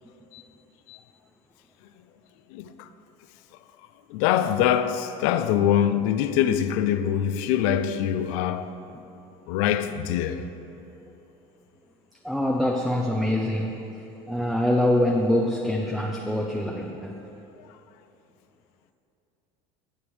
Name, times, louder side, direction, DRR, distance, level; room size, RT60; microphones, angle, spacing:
voice 1, 2.5-2.9 4.1-8.7 9.5-10.4, left 10 dB, 80° left, 0.5 m, -24 dB
voice 2, 12.2-17.2, left 1 dB, ahead, 0.6 m, -25 dB
15.5 x 7.0 x 3.2 m
supercardioid pair, 120°, 16 cm